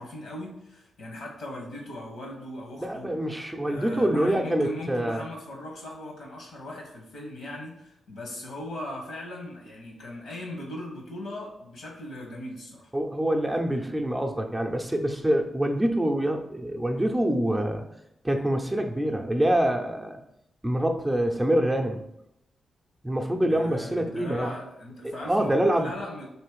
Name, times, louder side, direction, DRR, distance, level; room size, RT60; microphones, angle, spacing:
voice 1, 0.0-3.1 3.7-12.9 23.4-26.3, left 1 dB, 75° left, -1 dB, 1.4 m, -39 dB
voice 2, 2.8-5.2 12.9-17.8 18.2-20.2 20.6-22.0 23.0-24.5 25.2-25.9, right 1 dB, 10° right, 3 dB, 0.6 m, -25 dB
3.2 x 3.0 x 4.7 m, 0.81 s
supercardioid pair, 45°, 0 cm